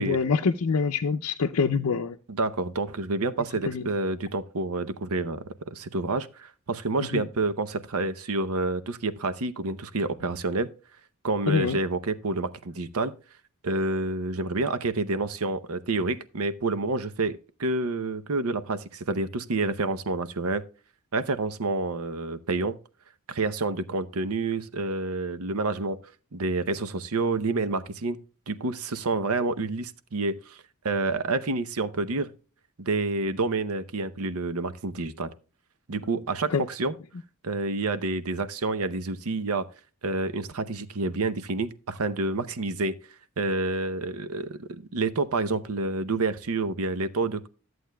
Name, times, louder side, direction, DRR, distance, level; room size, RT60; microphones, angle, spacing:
voice 1, 0.0-2.2 3.7-3.9 7.1-7.3 11.5-11.8 36.5-36.6, left 5 dB, 80° left, 0.5 m, -25 dB
voice 2, 2.3-10.7 11.2-13.1 13.6-20.6 21.1-22.8 23.3-26.0 26.3-28.2 28.5-30.6 30.8-32.3 32.8-35.3 35.9-36.9 37.4-39.7 40.0-42.9 43.4-47.5, right 3 dB, 75° right, 0.7 m, -28 dB
13.5 x 7.8 x 2.2 m
head